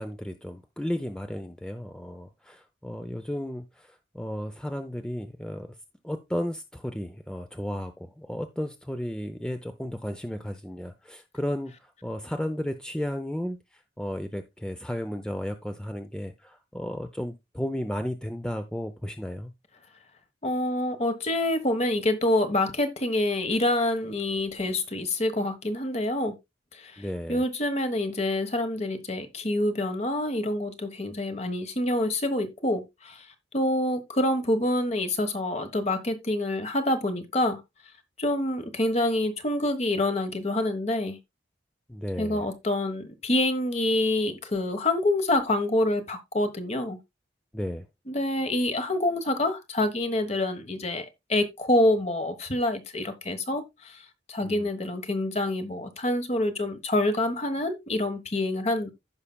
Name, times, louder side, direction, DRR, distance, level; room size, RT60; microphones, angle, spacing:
voice 1, 0.0-5.7 6.0-13.6 14.0-19.5 27.0-27.4 41.9-42.5 47.5-47.9 54.4-54.7, equal, 5° left, 0.5 m, -34 dB
voice 2, 20.4-26.4 26.8-27.0 27.3-33.2 33.5-37.6 38.2-41.2 42.2-47.0 48.1-54.0 54.3-58.9, left 1 dB, 35° left, 1.2 m, -26 dB
15.0 x 5.7 x 2.2 m
head